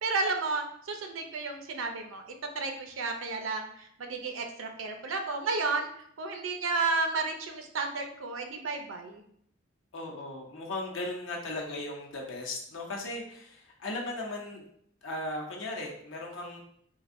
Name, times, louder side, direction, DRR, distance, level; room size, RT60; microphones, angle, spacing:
voice 1, 0.0-2.2 2.5-5.9 6.2-9.2, right 3 dB, 85° right, 4 dB, 0.5 m, -32 dB
voice 2, 9.9-14.7 15.0-16.6, left 2 dB, 75° left, -1 dB, 0.8 m, -37 dB
3.8 x 2.6 x 2.5 m, 0.67 s
head